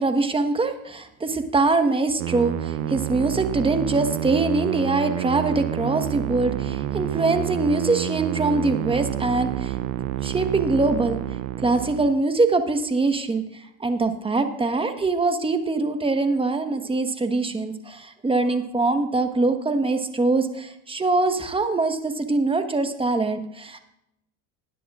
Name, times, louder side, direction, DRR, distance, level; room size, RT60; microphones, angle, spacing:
voice 1, 0.0-9.7 10.2-11.2 11.6-23.8, right 3 dB, 15° right, 7 dB, 1.2 m, -23 dB
sound 1, 2.2-12.2, right 13 dB, 85° right, 0.7 m, -28 dB
19.5 x 10.0 x 2.4 m, 0.81 s
supercardioid pair, 100°, 38 cm